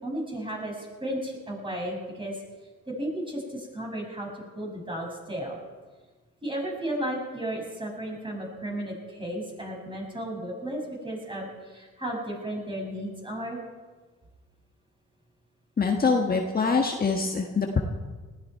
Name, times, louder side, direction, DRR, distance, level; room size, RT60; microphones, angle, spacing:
voice 1, 0.0-2.4 2.9-4.3 4.5-5.6 6.4-13.6, right 1 dB, 15° right, -1 dB, 6.4 m, -34 dB
voice 2, 15.8-17.8, left 4 dB, 30° left, 2 dB, 1.5 m, -24 dB
19.5 x 14.5 x 4.6 m, 1.4 s
cardioid pair, 90°, 30 cm